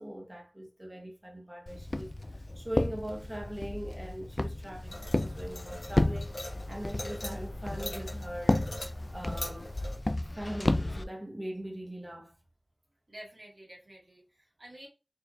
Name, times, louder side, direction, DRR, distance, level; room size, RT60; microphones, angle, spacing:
voice 1, 0.0-2.1 2.5-6.3 6.7-8.7 9.1-9.7 10.4-12.4, equal, 25° right, 1.0 m, -41 dB
Walk footsteps, 1.7-11.0, left 1 dB, 50° left, 0.3 m, -33 dB
sound 1, 4.9-10.0, left 1 dB, 85° left, 1.2 m, -43 dB
voice 2, 13.1-14.9, right 1 dB, 70° right, 1.6 m, -50 dB
4.3 x 2.4 x 2.4 m
wide cardioid pair, 45°, 0 cm